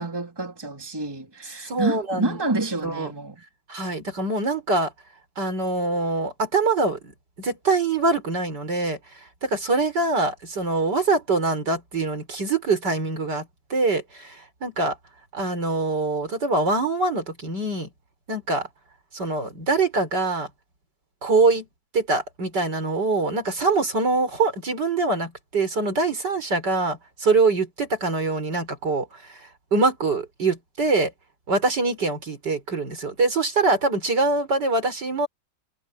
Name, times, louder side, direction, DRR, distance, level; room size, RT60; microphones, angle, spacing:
voice 1, 0.0-3.4, right 2 dB, 10° right, 3.4 m, -28 dB
voice 2, 1.6-2.4 2.8-3.1 3.7-4.9 5.4-7.1 7.4-9.0 9.4-15.0 15.3-17.9 18.3-18.7 19.1-20.5 21.2-21.7 21.9-29.4 29.7-31.1 31.5-35.3, right 3 dB, 60° right, 5.2 m, -24 dB
omnidirectional pair, 2.1 m